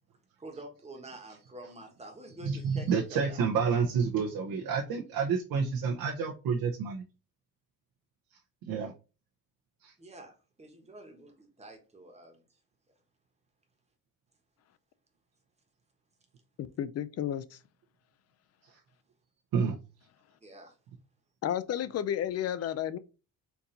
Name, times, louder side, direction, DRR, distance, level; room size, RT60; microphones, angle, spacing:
voice 1, 0.4-3.4 10.0-12.4 20.4-20.7, right 1 dB, 20° right, 1.2 m, -48 dB
voice 2, 2.4-7.0 8.6-8.9 9.8-9.9 18.6-18.8 19.5-19.8, right 6 dB, 75° right, 1.0 m, -29 dB
voice 3, 16.6-17.6 21.4-23.0, left 10 dB, 45° left, 0.4 m, -32 dB
4.5 x 2.7 x 3.8 m
cardioid pair, 125°, 36 cm